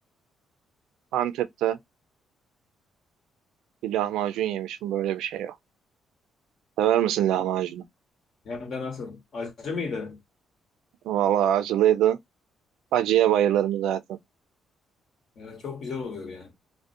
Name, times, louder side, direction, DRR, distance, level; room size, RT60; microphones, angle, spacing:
voice 1, 1.1-1.8 3.8-5.6 6.8-7.8 11.0-12.2 12.9-14.2, right 11 dB, 90° right, 0.3 m, -24 dB
voice 2, 8.4-10.2 15.4-16.5, left 4 dB, 60° left, 1.0 m, -34 dB
2.4 x 2.0 x 2.5 m
cardioid pair, 90°, 0 cm